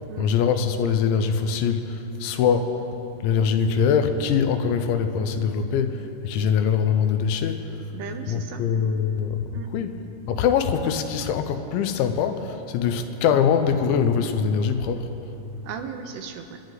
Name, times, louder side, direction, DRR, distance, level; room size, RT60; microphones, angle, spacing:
voice 1, 0.2-2.7 3.2-7.7 8.3-10.0 10.3-15.1, left 7 dB, 90° left, 8 dB, 3.1 m, -23 dB
voice 2, 7.9-8.6 9.5-9.7 15.6-16.6, right 7 dB, 80° right, 6 dB, 2.7 m, -36 dB
28.5 x 11.0 x 3.9 m, 3.0 s
omnidirectional pair, 5.2 m